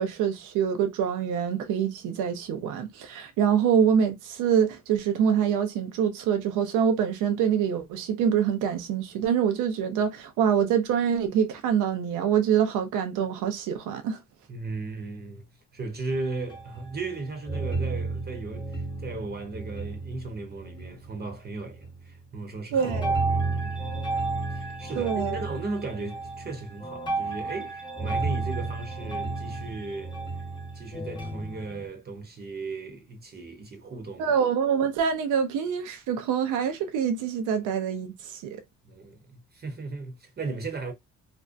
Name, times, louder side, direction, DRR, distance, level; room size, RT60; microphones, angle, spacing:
voice 1, 0.0-14.2 22.7-23.1 25.0-25.4 34.2-38.6, right 8 dB, 90° right, 0.5 m, -25 dB
voice 2, 14.5-15.4 15.7-24.1 24.5-30.2 30.7-34.3 38.8-40.9, right 3 dB, 35° right, 0.7 m, -36 dB
sound 1, 16.1-17.2 17.5-21.2 21.6-22.1 22.8-31.9, right 3 dB, 15° left, 0.7 m, -32 dB
2.5 x 2.1 x 2.4 m
cardioid pair, 90°, 30 cm